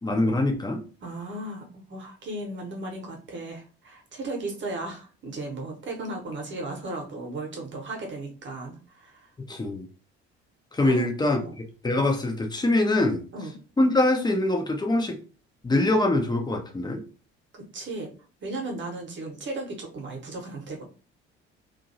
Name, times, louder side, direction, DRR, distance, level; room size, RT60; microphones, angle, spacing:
voice 1, 0.0-0.8 9.5-9.8 10.7-11.4 11.8-13.2 13.8-15.2 15.6-17.0, left 2 dB, 15° left, 4 dB, 0.7 m, -23 dB
voice 2, 1.0-9.3 10.8-11.1 11.3-11.5 13.3-13.6 17.5-18.1 18.4-20.8, right 2 dB, 35° right, 1 dB, 1.1 m, -35 dB
2.7 x 2.5 x 2.7 m, 0.37 s
figure-of-eight pair, 50°, 31 cm